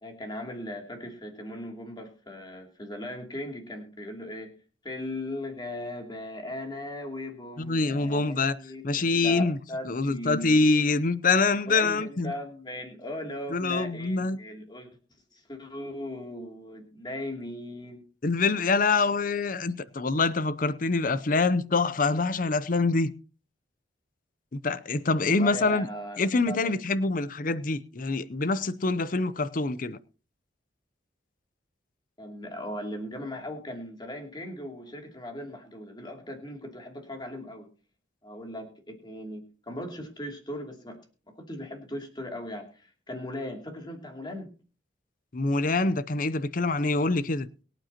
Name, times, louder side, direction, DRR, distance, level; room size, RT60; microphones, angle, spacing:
voice 1, 0.0-4.5 4.8-10.6 11.7-14.9 15.3-18.0 25.3-26.8 32.2-37.7 38.2-41.0 41.4-44.5, left 1 dB, 25° left, 2.7 m, -38 dB
voice 2, 7.6-8.5 8.8-9.6 9.9-12.3 13.5-14.4 18.2-23.1 24.5-25.9 26.2-30.0 45.3-47.5, left 3 dB, 45° left, 0.6 m, -25 dB
23.0 x 9.1 x 2.9 m
head